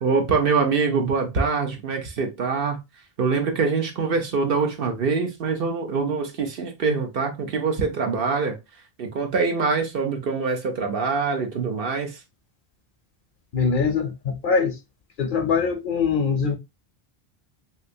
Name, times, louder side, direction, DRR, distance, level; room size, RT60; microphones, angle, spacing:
voice 1, 0.0-2.8 3.2-8.6 9.0-12.2, right 4 dB, 60° right, 0.9 m, -24 dB
voice 2, 13.5-14.8 15.2-16.6, left 5 dB, 60° left, 0.6 m, -23 dB
3.3 x 2.8 x 2.6 m
omnidirectional pair, 1.1 m